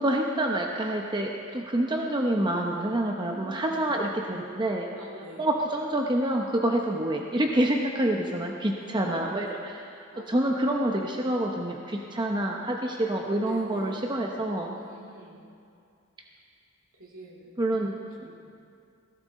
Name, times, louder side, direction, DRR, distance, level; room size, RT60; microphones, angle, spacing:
voice 1, 0.0-4.9 5.4-10.0 10.3-14.7 17.6-18.3, right 1 dB, 20° right, 1 dB, 0.8 m, -27 dB
voice 2, 2.9-4.0 5.0-5.5 8.7-9.3 10.1-10.6 11.8-12.6 13.4-14.0 14.7-15.5 16.9-17.5 18.2-18.4, right 1 dB, 65° right, -3 dB, 2.9 m, -46 dB
17.5 x 16.0 x 4.2 m, 2.4 s
head